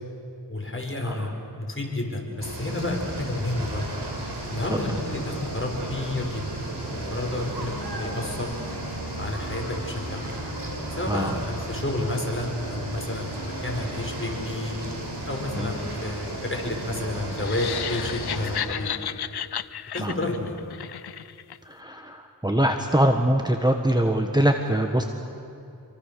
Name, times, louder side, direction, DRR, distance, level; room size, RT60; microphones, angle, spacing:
voice 1, 0.5-3.8 4.5-6.4 6.9-8.5 9.2-10.2 11.0-14.8 15.3-18.9 19.9-20.6, left 2 dB, 30° left, 1 dB, 5.2 m, -30 dB
sound 1, 2.4-18.6, right 1 dB, 85° right, 4.3 m, -34 dB
sound 2, 4.8-11.8 12.4-19.5, left 2 dB, 50° left, 6.8 m, -43 dB
voice 2, 11.1-11.4 15.6-15.7 20.0-20.1 21.6-25.0, right 1 dB, 10° right, 4 dB, 1.5 m, -23 dB
sound 3, 17.3-21.6, left 9 dB, 70° left, 0.6 m, -33 dB
27.0 x 24.0 x 6.9 m, 2.6 s
wide cardioid pair, 50°, 40 cm